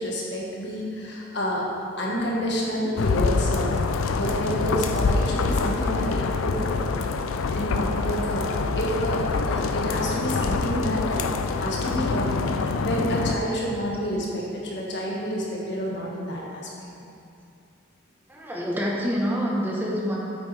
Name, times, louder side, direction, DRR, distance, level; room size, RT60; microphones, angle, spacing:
voice 1, 0.0-1.6 2.0-3.7 4.1-6.8 7.5-11.3 11.6-16.6, equal, 60° left, -4 dB, 1.6 m, -29 dB
sound 1, 3.0-13.3, left 4 dB, 80° left, 0.4 m, -25 dB
voice 2, 18.3-20.2, equal, 10° right, -3 dB, 1.1 m, -26 dB
9.2 x 8.0 x 3.4 m, 2.6 s
head